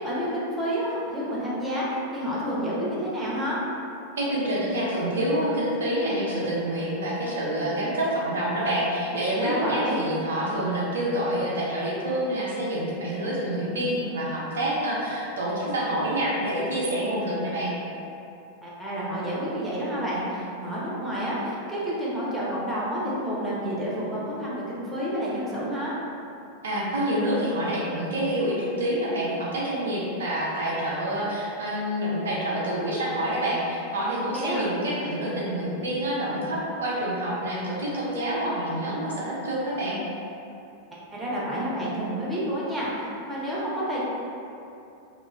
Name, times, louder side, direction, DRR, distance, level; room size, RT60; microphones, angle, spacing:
voice 1, 0.0-3.6 9.4-10.0 18.6-25.9 34.3-34.7 41.1-44.0, equal, 10° right, -8 dB, 0.7 m, -29 dB
voice 2, 4.2-17.7 26.6-40.0, right 1 dB, 65° right, -5 dB, 0.4 m, -27 dB
3.0 x 2.4 x 2.3 m, 2.7 s
figure-of-eight pair, 90°, 0 cm